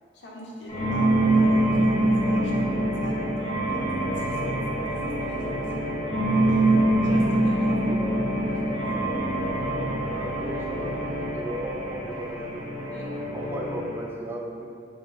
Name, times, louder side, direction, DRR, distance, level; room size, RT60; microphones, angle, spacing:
voice 1, 0.1-6.6 7.0-7.8 8.3-9.0 12.9-13.1, left 1 dB, 70° left, -3 dB, 0.7 m, -41 dB
sound 1, 0.7-14.0, right 1 dB, 35° left, 0.6 m, -25 dB
voice 2, 10.0-11.1 11.3-12.8 13.3-14.7, right 1 dB, 10° right, -3 dB, 0.4 m, -36 dB
3.7 x 2.8 x 3.9 m, 2.4 s
head